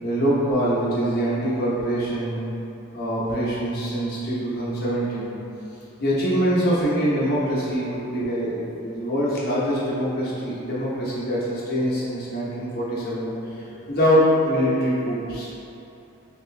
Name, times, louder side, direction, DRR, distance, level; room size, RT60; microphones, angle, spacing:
voice 1, 0.0-2.4 2.9-5.3 6.0-15.5, equal, 45° left, -8 dB, 0.9 m, -24 dB
3.3 x 2.9 x 3.3 m, 2.8 s
head